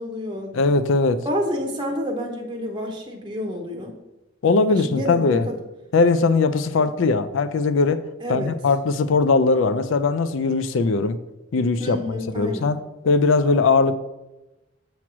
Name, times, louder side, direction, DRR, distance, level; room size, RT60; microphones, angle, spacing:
voice 1, 0.0-0.7 1.2-3.9 4.7-5.6 6.8-6.9 8.2-8.5 11.8-12.7, equal, 20° right, 1 dB, 0.7 m, -29 dB
voice 2, 0.5-1.2 4.4-5.5 5.9-8.0 8.3-11.2 11.5-12.8 13.0-13.9, left 4 dB, 65° left, 12 dB, 0.4 m, -20 dB
7.1 x 3.1 x 6.0 m, 1.0 s
head